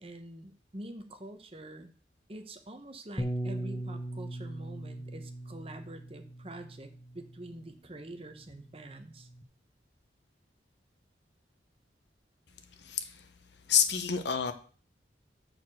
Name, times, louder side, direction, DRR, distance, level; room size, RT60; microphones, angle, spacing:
voice 1, 0.0-1.9 2.3-9.3, right 1 dB, 30° right, 7 dB, 0.9 m, -46 dB
Bass guitar, 3.2-7.7 8.5-9.4, right 1 dB, 15° left, 0.7 m, -39 dB
voice 2, 12.8-13.3 13.7-14.5, left 8 dB, 70° left, 9 dB, 1.1 m, -28 dB
6.6 x 6.3 x 6.4 m, 0.42 s
head